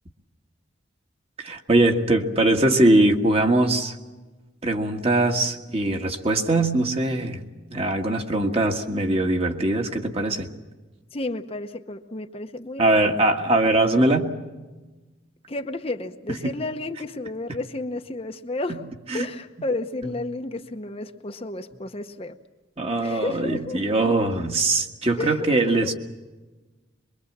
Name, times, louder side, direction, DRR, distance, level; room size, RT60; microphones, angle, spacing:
voice 1, 1.4-3.9 4.6-7.4 7.7-10.5 12.8-14.3 16.4-16.6 18.7-18.8 19.1-19.3 22.8-25.9, right 2 dB, 30° right, 3 dB, 1.7 m, -21 dB
voice 2, 11.1-13.0 15.5-18.9 19.1-22.4 23.0-23.8 25.2-25.9, left 2 dB, 30° left, 6 dB, 0.9 m, -32 dB
24.0 x 23.5 x 7.4 m, 1.2 s
head